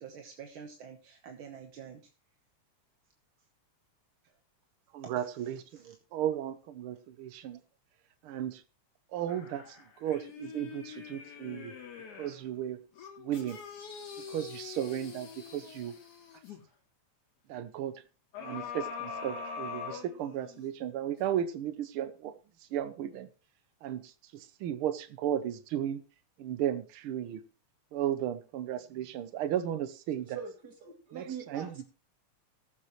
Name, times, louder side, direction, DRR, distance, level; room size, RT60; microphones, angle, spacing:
voice 1, 0.0-2.0 5.0-5.3 5.7-5.9, right 7 dB, 55° right, 1.6 m, -47 dB
voice 2, 4.9-7.6 8.2-8.6 9.1-11.7 12.2-12.8 13.2-13.6 14.2-15.9 17.5-18.0 18.4-22.3 22.7-23.3 23.8-26.0 26.4-27.4 27.9-30.4 31.1-31.9, right 10 dB, 80° right, 1.2 m, -35 dB
sound 1, 9.3-12.4 13.0-16.6 18.3-20.7 21.2-21.3, left 6 dB, 90° left, 3.9 m, -43 dB
voice 3, 30.2-31.8, right 6 dB, 35° right, 3.0 m, -43 dB
19.0 x 7.6 x 3.1 m
omnidirectional pair, 3.3 m